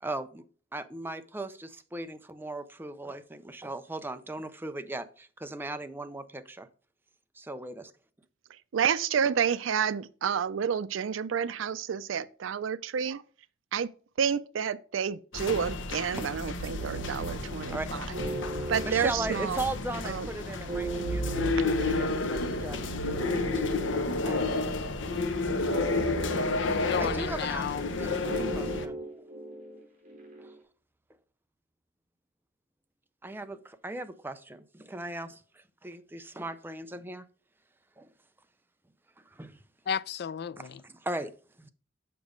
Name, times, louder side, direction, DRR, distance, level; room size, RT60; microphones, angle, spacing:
voice 1, 0.0-6.7 7.3-7.9 17.7-17.9 18.8-23.7 24.2-24.7 25.1-25.2 27.0-29.3 30.4-30.6 33.2-37.3 38.0-38.1 39.3-39.6 40.6-41.7, right 2 dB, 10° right, 0.5 m, -38 dB
voice 2, 8.7-13.2 13.7-13.9 14.2-17.8 18.7-19.6 20.0-20.3, right 7 dB, 85° right, 0.4 m, -29 dB
sound 1, 15.3-28.9, left 2 dB, 70° left, 0.8 m, -31 dB
sound 2, 16.8-30.6, right 1 dB, 45° right, 3.2 m, -39 dB
voice 3, 26.6-27.8 39.9-40.8, left 7 dB, 55° left, 0.3 m, -33 dB
6.9 x 5.2 x 5.0 m
head